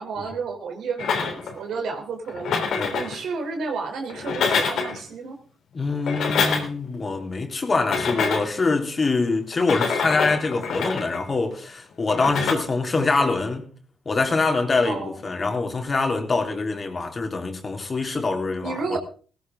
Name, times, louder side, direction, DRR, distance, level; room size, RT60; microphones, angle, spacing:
voice 1, 0.0-5.4 12.2-12.5 13.0-13.3 14.8-15.1 18.6-19.0, right 4 dB, 75° right, 3.5 m, -32 dB
sound 1, 1.0-1.6 2.3-3.2 4.1-5.0 5.9-6.9 7.8-8.6 9.5-11.2 12.1-12.5, left 5 dB, 75° left, 3.4 m, -26 dB
voice 2, 5.7-13.7 14.0-19.0, left 3 dB, 40° left, 3.5 m, -24 dB
16.5 x 15.5 x 3.7 m
supercardioid pair, 55°, 0 cm